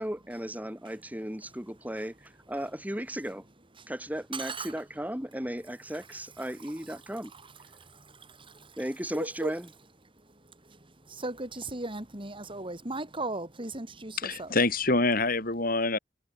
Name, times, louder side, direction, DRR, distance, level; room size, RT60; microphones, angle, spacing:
voice 1, 0.0-3.4 3.9-7.3 8.8-9.7, equal, 10° right, 6.8 m, -35 dB
voice 2, 4.3-4.7 6.6-7.0 7.3-8.8 9.1-9.5 10.6-14.5, right 2 dB, 30° right, 4.3 m, -38 dB
voice 3, 14.2-16.0, left 3 dB, 50° left, 6.5 m, -26 dB
head